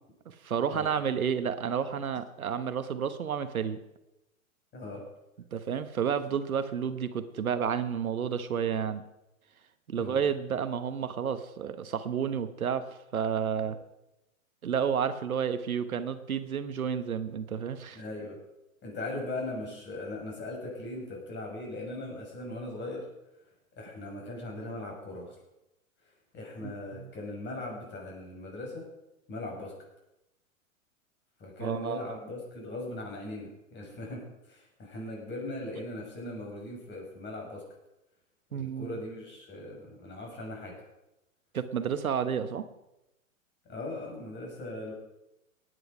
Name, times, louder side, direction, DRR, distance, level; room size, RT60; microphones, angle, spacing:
voice 1, 0.3-3.8 5.5-9.0 9.9-12.8 13.1-13.8 14.6-18.0 26.6-27.1 31.6-32.0 38.5-38.9 41.5-42.6, right 7 dB, 85° right, 11 dB, 1.1 m, -31 dB
voice 2, 4.7-5.0 9.9-10.2 13.6-13.7 17.9-18.4 18.8-23.1 23.8-25.3 26.3-28.8 29.3-29.7 31.4-37.6 38.5-40.7 43.7-44.9, left 2 dB, 25° left, -1 dB, 6.6 m, -39 dB
18.0 x 9.7 x 5.0 m, 0.91 s
hypercardioid pair, 110°, 41 cm